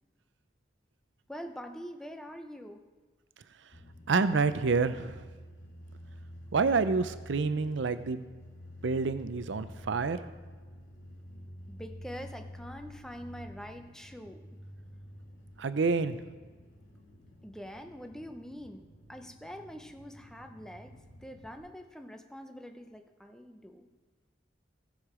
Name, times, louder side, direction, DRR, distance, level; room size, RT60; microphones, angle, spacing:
voice 1, 1.3-2.8 11.7-14.4 17.4-18.8 19.1-23.9, equal, 5° left, 5 dB, 0.6 m, -45 dB
sound 1, 3.7-21.6, equal, 90° left, 1.9 m, -49 dB
voice 2, 4.1-5.2 6.5-8.2 8.8-10.2 15.6-16.2, right 4 dB, 80° right, 13 dB, 0.5 m, -28 dB
15.0 x 6.5 x 4.9 m, 1.3 s
head